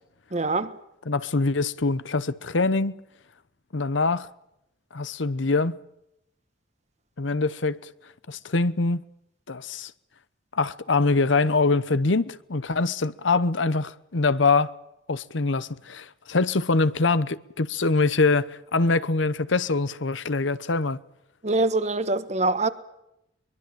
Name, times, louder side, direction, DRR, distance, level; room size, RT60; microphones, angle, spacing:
voice 1, 0.3-0.7 21.4-22.7, right 2 dB, 35° right, 1.4 m, -24 dB
voice 2, 1.1-3.0 3.7-4.3 4.9-5.8 7.2-7.8 8.3-9.0 9.5-9.9 10.5-14.7 15.1-21.0, left 3 dB, 75° left, 1.0 m, -24 dB
23.0 x 22.0 x 7.6 m
head